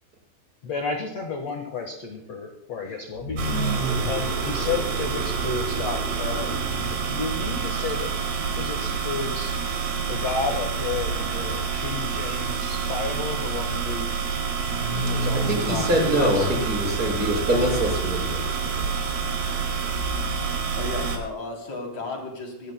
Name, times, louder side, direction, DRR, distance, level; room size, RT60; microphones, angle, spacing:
voice 1, 0.6-3.4 4.0-8.1 8.6-9.5 10.1-14.1 15.0-16.5, left 4 dB, 85° left, 3 dB, 1.4 m, -32 dB
sound 1, 3.1-8.3 14.5-20.2, right 1 dB, 40° right, 8.0 m, -33 dB
sound 2, 3.4-21.2, right 5 dB, 60° right, 3.8 m, -28 dB
voice 2, 15.3-18.4 18.7-18.8, equal, 20° right, -1 dB, 5.9 m, -24 dB
voice 3, 20.7-22.7, left 2 dB, 40° left, 1 dB, 4.0 m, -34 dB
25.5 x 16.5 x 2.2 m, 0.85 s
omnidirectional pair, 5.2 m